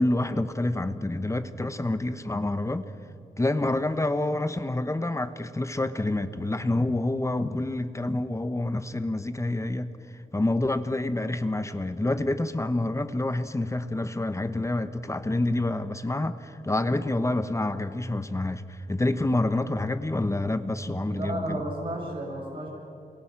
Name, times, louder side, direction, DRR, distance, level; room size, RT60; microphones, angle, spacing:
voice 1, 0.0-2.9 3.4-21.6, left 2 dB, 20° left, 11 dB, 1.0 m, -28 dB
voice 2, 21.0-22.7, right 1 dB, 30° right, -3 dB, 6.9 m, -33 dB
28.0 x 22.5 x 5.9 m, 2.5 s
cardioid pair, 85°, 16 cm